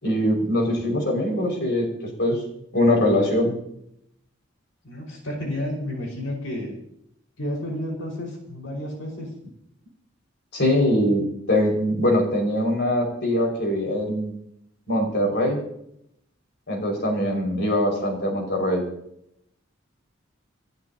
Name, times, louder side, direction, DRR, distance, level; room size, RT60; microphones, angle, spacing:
voice 1, 0.0-1.9 2.2-2.4 2.7-3.5 10.5-14.3 14.9-15.6 16.7-18.8, left 1 dB, 60° left, 1 dB, 5.8 m, -22 dB
voice 2, 4.8-6.7 7.4-9.3 17.0-17.2, left 1 dB, 85° left, 0 dB, 5.3 m, -31 dB
29.5 x 11.5 x 2.9 m, 0.75 s
head